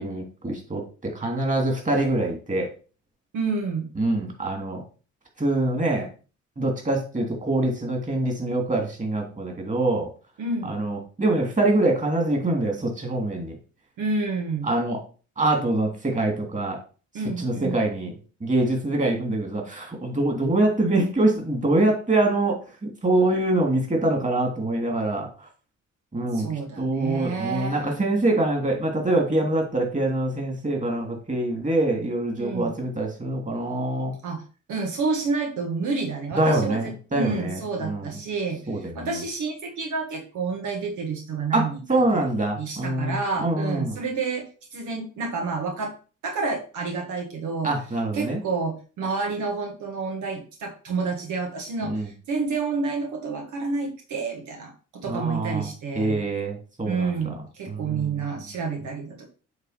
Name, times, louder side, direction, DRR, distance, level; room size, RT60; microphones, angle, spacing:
voice 1, 0.0-2.7 4.0-4.8 5.4-6.1 6.6-10.1 10.6-13.6 14.6-15.0 15.4-16.8 17.4-18.1 18.4-25.5 26.1-26.5 26.8-34.1 36.3-38.1 38.7-39.2 41.5-44.0 47.6-48.4 51.8-52.1 55.0-55.7 55.9-57.2 57.7-58.2, right 2 dB, 25° right, 2 dB, 3.0 m, -24 dB
voice 2, 3.3-3.9 10.4-10.7 14.0-14.7 17.1-17.8 26.3-27.9 32.4-32.7 34.2-34.4 34.7-41.8 42.1-42.2 42.6-44.5 44.7-45.9 46.2-47.7 48.1-56.2 56.8-59.3, right 4 dB, 75° right, 2 dB, 1.7 m, -29 dB
8.2 x 3.7 x 5.2 m, 0.36 s
cardioid pair, 90°, 30 cm